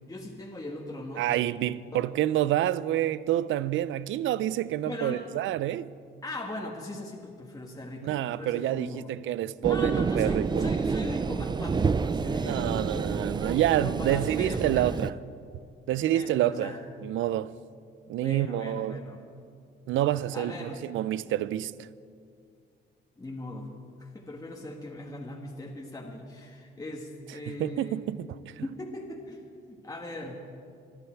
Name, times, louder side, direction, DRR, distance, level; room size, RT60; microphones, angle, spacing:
voice 1, 0.1-1.3 1.9-2.1 4.9-5.3 6.2-9.1 9.6-15.0 16.1-16.8 18.2-19.2 20.3-20.9 23.2-23.7 24.0-28.1 28.6-30.4, left 1 dB, 15° left, 1.8 m, -39 dB
voice 2, 1.2-5.9 8.0-10.6 12.4-15.1 15.9-16.7 17.0-17.5 18.1-19.0 19.9-21.9 27.5-28.6, right 13 dB, 80° right, 0.5 m, -28 dB
sound 1, 9.6-15.1, right 5 dB, 20° right, 0.4 m, -29 dB
25.5 x 10.5 x 4.6 m
cardioid pair, 90°, 20 cm